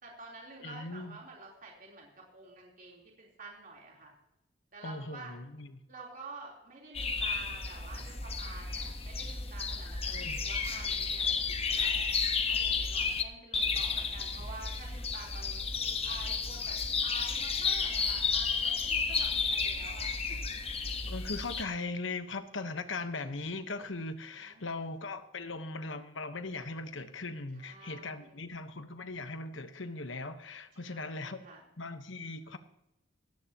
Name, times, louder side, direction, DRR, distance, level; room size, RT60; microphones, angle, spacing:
voice 1, 0.0-4.1 4.7-5.3 5.9-16.7 17.0-20.4 24.4-24.7 27.5-28.5 30.7-31.7, right 3 dB, 45° right, -2 dB, 3.8 m, -49 dB
voice 2, 0.6-1.2 4.8-5.8 10.1-10.4 13.7-13.8 21.1-31.4 31.8-32.6, left 3 dB, 70° left, 9 dB, 1.2 m, -39 dB
sound 1, 6.9-13.2 13.5-21.6, left 5 dB, 30° left, 1.2 m, -32 dB
18.5 x 15.5 x 3.0 m, 0.88 s
head